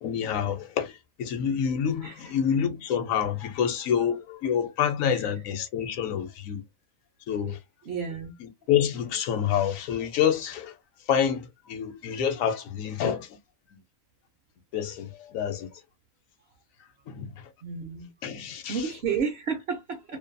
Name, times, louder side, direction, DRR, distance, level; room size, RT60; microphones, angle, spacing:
voice 1, 0.0-6.6 7.3-7.6 8.4-10.7 11.1-13.3 14.7-15.7 17.1-17.3 18.2-18.9, left 8 dB, 70° left, 0.9 m, -27 dB
voice 2, 7.9-8.3 17.6-18.1 18.7-20.2, right 6 dB, 60° right, 0.7 m, -31 dB
2.6 x 2.2 x 2.5 m
omnidirectional pair, 1.5 m